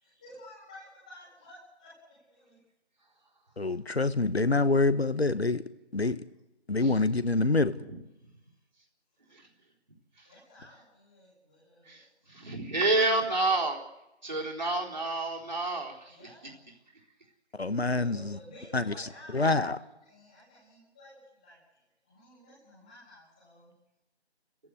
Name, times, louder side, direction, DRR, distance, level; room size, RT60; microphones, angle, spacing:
voice 1, 0.0-1.9 2.3-2.6 3.5-3.7 10.2-12.1 16.1-16.5 17.6-21.8 22.0-23.7, left 1 dB, 5° left, 2.1 m, -53 dB
voice 2, 3.6-5.6 5.9-6.2 6.7-7.8 17.5-18.4 18.7-18.9 19.3-19.8, left 3 dB, 70° left, 1.4 m, -26 dB
voice 3, 11.8-13.8 14.2-16.3, right 2 dB, 40° right, 4.0 m, -29 dB
29.5 x 15.0 x 8.2 m
figure-of-eight pair, 170°, 33 cm